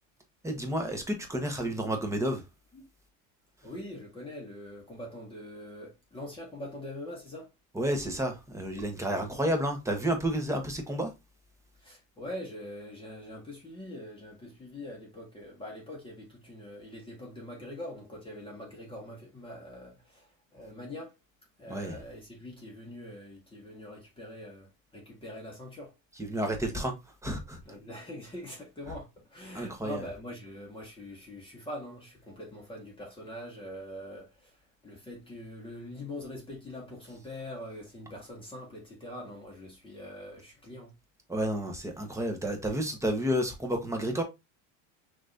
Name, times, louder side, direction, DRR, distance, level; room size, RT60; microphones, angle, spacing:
voice 1, 0.4-2.4 7.7-11.1 21.7-22.0 26.2-26.9 27.2-27.6 29.5-30.0 41.3-44.2, right 1 dB, 5° right, 1.3 m, -30 dB
voice 2, 3.6-7.5 11.8-20.3 20.5-21.1 21.6-24.7 24.9-25.9 27.7-34.5 34.8-40.9, left 1 dB, 15° left, 1.9 m, -43 dB
5.9 x 3.2 x 2.7 m
supercardioid pair, 120°, 39 cm